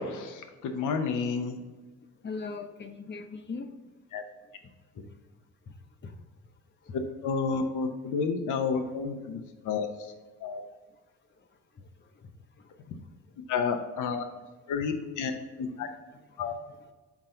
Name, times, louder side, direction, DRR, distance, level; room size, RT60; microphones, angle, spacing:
voice 1, 0.0-1.6 4.1-4.2 7.2-9.9 10.4-10.6 13.5-14.2 14.7-15.3 15.6-15.9 16.4-16.5, left 5 dB, 80° left, 7 dB, 0.8 m, -30 dB
voice 2, 2.2-3.7 5.7-5.8 6.0-6.1 6.8-7.0 11.7-11.9 12.1-12.3 12.9-13.0 15.7-15.9 16.3-16.5, left 4 dB, 35° left, 7 dB, 0.8 m, -40 dB
6.1 x 4.4 x 3.8 m, 1.2 s
cardioid pair, 90°, 30 cm